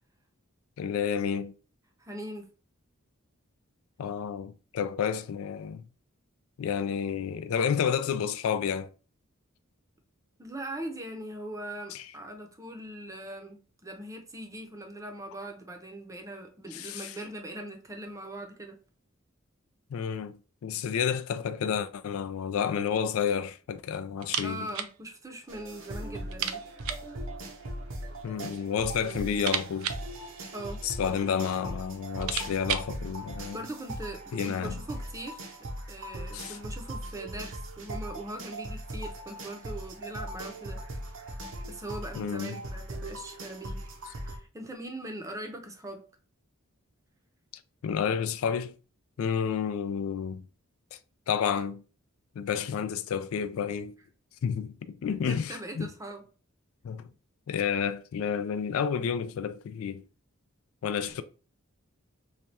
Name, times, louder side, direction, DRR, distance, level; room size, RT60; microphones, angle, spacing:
voice 1, 0.8-1.5 4.0-5.9 6.6-8.9 11.9-12.0 16.7-17.1 19.9-24.7 28.2-29.9 30.8-33.6 34.3-34.7 36.3-36.6 42.2-42.6 47.8-48.7 49.2-50.4 50.9-51.0 51.3-51.8 52.4-53.9 54.4-55.9 56.8-57.1 57.5-60.0 60.8-61.2, left 7 dB, 70° left, 0.3 m, -30 dB
voice 2, 2.0-2.5 10.4-18.7 24.4-26.6 30.5-30.8 33.5-40.8 41.7-43.8 44.2-46.0 55.2-56.2, right 1 dB, 15° right, 0.6 m, -41 dB
sound 1, 24.2-25.0 25.2-25.3 25.7-25.8 26.3-27.1 28.1-28.7 29.0-31.0 31.7-31.8 32.0-33.0, right 9 dB, 90° right, 0.4 m, -35 dB
sound 2, 25.5-44.4, right 1 dB, 65° right, 0.8 m, -39 dB
3.2 x 2.3 x 4.1 m
head